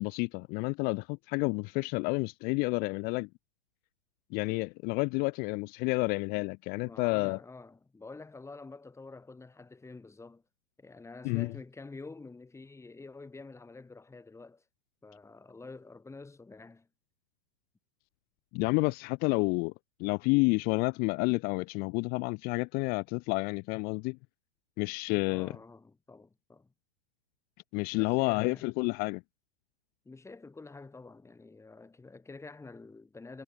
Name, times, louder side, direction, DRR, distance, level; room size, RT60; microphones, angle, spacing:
voice 1, 0.0-3.3 4.3-7.4 11.2-11.5 18.5-19.7 20.0-24.2 24.8-25.5 27.7-29.2, left 30 dB, 30° left, 0.4 m, -30 dB
voice 2, 6.8-10.4 10.8-14.6 15.0-16.9 25.3-26.7 27.9-28.7 30.0-33.4, left 3 dB, 10° left, 3.4 m, -48 dB
hypercardioid pair, 115°, 32 cm